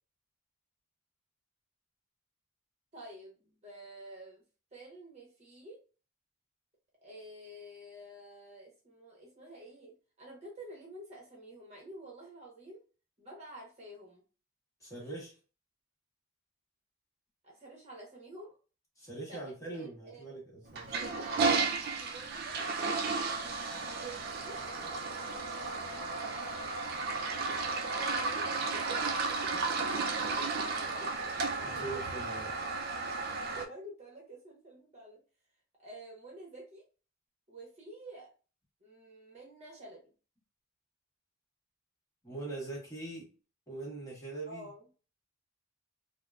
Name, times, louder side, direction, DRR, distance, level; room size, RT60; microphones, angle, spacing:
voice 1, 2.9-4.4 4.7-5.8 7.0-9.9 10.2-12.8 13.2-14.2 17.4-18.6 19.3-19.4 19.7-20.2 20.9-22.8 23.9-24.6 25.5-26.9 27.7-31.1 33.6-35.2 35.8-36.8 37.5-38.3 38.8-40.0 44.5-44.8, right 1 dB, 35° right, -2 dB, 0.9 m, -49 dB
voice 2, 14.8-15.3 19.0-20.9 31.6-32.5 42.2-43.3 43.7-44.7, right 2 dB, 15° left, -4 dB, 1.1 m, -42 dB
Toilet flush, 20.7-33.7, right 4 dB, 50° right, 0.4 m, -33 dB
3.6 x 2.0 x 2.3 m, 0.36 s
head